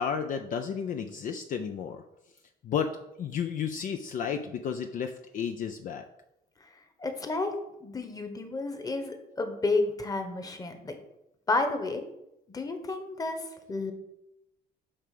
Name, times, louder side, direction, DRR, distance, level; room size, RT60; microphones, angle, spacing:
voice 1, 0.0-2.0 2.6-6.0, left 7 dB, 50° left, 7 dB, 0.6 m, -32 dB
voice 2, 7.0-7.5 7.8-11.0 11.5-12.0 12.5-13.9, left 3 dB, 20° left, 6 dB, 1.3 m, -31 dB
8.7 x 3.4 x 6.7 m, 0.88 s
cardioid pair, 110°, 17 cm